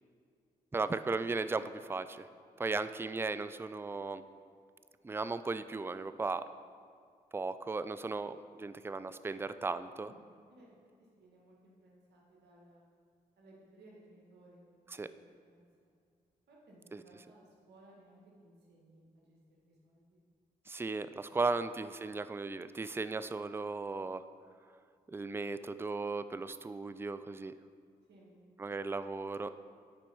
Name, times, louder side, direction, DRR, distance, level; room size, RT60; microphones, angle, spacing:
voice 1, 0.7-2.3 2.6-4.2 5.0-6.4 7.3-10.1 14.9-15.1 16.9-17.0 20.7-24.2 25.1-27.5 28.6-29.5, right 3 dB, 15° right, 13 dB, 0.3 m, -36 dB
voice 2, 10.0-10.8 11.2-12.9 13.4-15.9 16.5-19.2 19.5-20.2 21.2-21.4 28.1-28.7, right 1 dB, 75° right, -3 dB, 1.7 m, -61 dB
7.8 x 4.4 x 5.4 m, 2.2 s
supercardioid pair, 45°, 17 cm